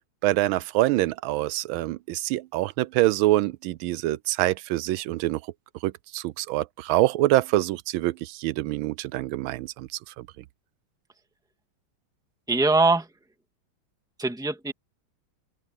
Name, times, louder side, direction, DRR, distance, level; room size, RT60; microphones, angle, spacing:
voice 1, 0.2-5.4 5.8-10.3, right 16 dB, 85° right, 1.4 m, -25 dB
voice 2, 12.5-13.1 14.2-14.7, right 3 dB, ahead, 2.2 m, -22 dB
open air
omnidirectional pair, 2.2 m